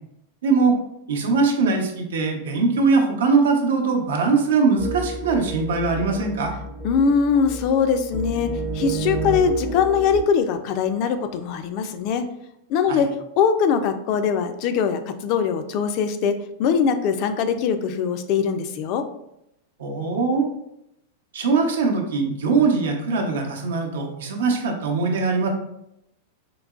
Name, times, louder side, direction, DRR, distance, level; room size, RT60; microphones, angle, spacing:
voice 1, 0.4-0.8 1.1-6.5 12.9-13.0 19.8-20.5 21.3-25.5, right 4 dB, 85° right, 2 dB, 0.7 m, -21 dB
sound 1, 4.8-10.2, right 3 dB, 15° right, 0.4 m, -31 dB
voice 2, 6.8-12.2 12.7-19.1, left 6 dB, 45° left, 9 dB, 0.3 m, -22 dB
3.8 x 2.9 x 2.3 m, 0.81 s
supercardioid pair, 140°, 0 cm